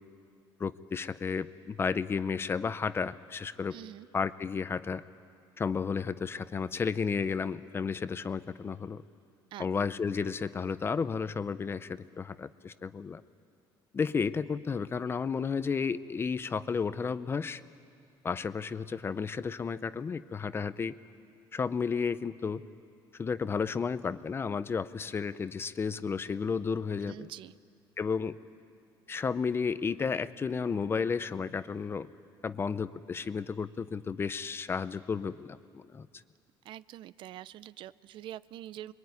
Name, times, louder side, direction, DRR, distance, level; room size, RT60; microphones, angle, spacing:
voice 1, 0.6-3.8 4.1-5.0 5.6-9.0 9.6-13.2 13.9-17.6 18.2-20.9 21.5-22.6 23.2-27.3 28.0-28.4 29.1-32.1 32.4-36.1, left 5 dB, 25° left, 14 dB, 0.6 m, -32 dB
voice 2, 3.7-4.1 9.5-9.7 27.1-27.5 36.6-38.9, right 12 dB, 65° right, 18 dB, 0.6 m, -45 dB
25.5 x 22.5 x 9.5 m, 2.4 s
cardioid pair, 140°, 9 cm